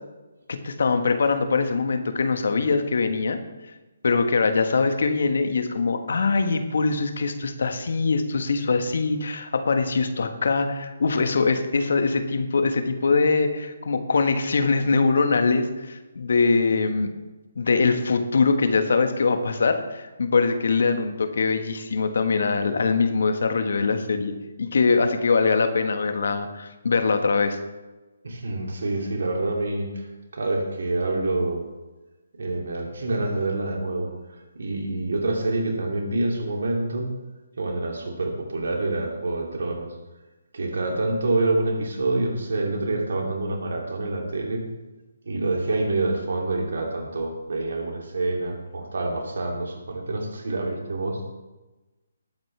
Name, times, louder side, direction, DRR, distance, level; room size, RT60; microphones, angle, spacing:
voice 1, 0.5-3.4 4.0-17.1 17.5-24.3 24.6-27.6, left 4 dB, 65° left, 8 dB, 1.5 m, -22 dB
voice 2, 28.2-31.7 32.4-37.2 37.6-39.9 40.5-44.6 45.2-51.2, right 2 dB, 70° right, 1 dB, 2.9 m, -27 dB
19.5 x 8.9 x 3.4 m, 1.1 s
figure-of-eight pair, 145°, 0 cm